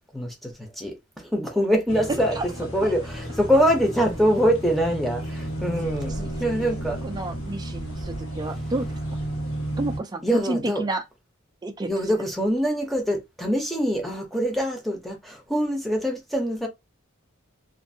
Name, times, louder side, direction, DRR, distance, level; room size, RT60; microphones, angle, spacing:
voice 1, 0.1-2.4 2.7-7.0 10.2-10.8 11.8-16.7, equal, ahead, 0.7 m, -24 dB
sound 1, 1.9-10.0, right 1 dB, 70° left, 1.2 m, -32 dB
voice 2, 7.0-8.9 9.8-11.0 11.6-11.9, right 2 dB, 20° right, 0.3 m, -30 dB
2.6 x 2.5 x 2.6 m
head